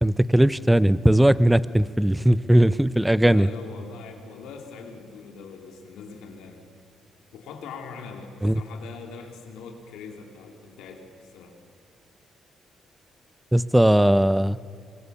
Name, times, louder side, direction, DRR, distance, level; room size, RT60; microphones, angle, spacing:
voice 1, 0.0-3.5 8.4-8.6 13.5-14.6, right 1 dB, 5° right, 17 dB, 0.6 m, -18 dB
voice 2, 3.2-6.6 7.3-11.1 11.3-11.6, left 5 dB, 90° left, 3 dB, 3.1 m, -42 dB
24.5 x 23.0 x 7.1 m, 2.5 s
cardioid pair, 90°, 0 cm